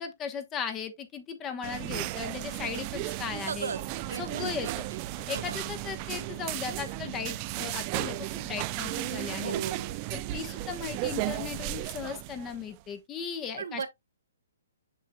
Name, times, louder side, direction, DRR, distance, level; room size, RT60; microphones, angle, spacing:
voice 1, 0.0-3.7 4.2-4.8 5.3-9.5 10.1-13.9, left 7 dB, 20° left, 1.1 m, -37 dB
sound 1, 1.6-12.8, right 17 dB, 30° right, 0.4 m, -35 dB
sound 2, 3.2-9.0, equal, 45° left, 2.7 m, -52 dB
voice 2, 3.5-5.0 5.3-5.6 9.4-10.0 13.6-13.9, right 6 dB, 80° right, 1.1 m, -36 dB
7.3 x 5.6 x 2.3 m
hypercardioid pair, 145°, 0 cm